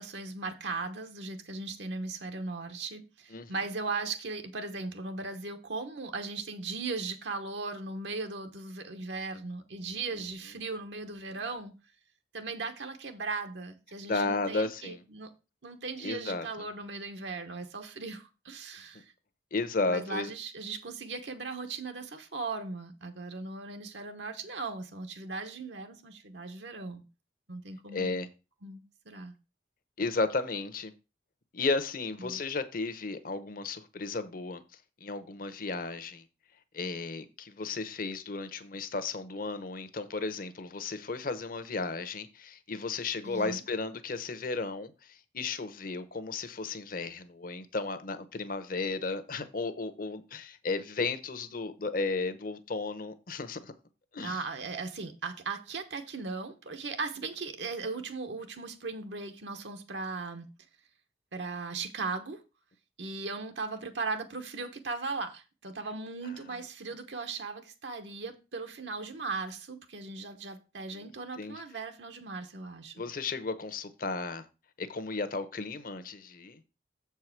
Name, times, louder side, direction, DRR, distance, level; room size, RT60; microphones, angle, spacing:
voice 1, 0.0-11.7 12.3-15.3 15.6-19.1 19.8-27.0 27.5-28.2 28.6-29.3 32.2-32.4 43.2-43.6 54.2-60.5 61.3-62.4 63.0-72.9, right 3 dB, 80° right, 1.1 m, -38 dB
voice 2, 14.0-15.0 16.0-16.5 19.5-20.3 27.9-28.3 30.0-30.9 31.5-34.6 35.0-36.2 36.7-53.7 54.1-54.4 70.9-71.1 71.4-71.6 73.0-74.5 74.8-76.6, left 3 dB, 50° left, 0.8 m, -34 dB
7.4 x 4.7 x 5.9 m
head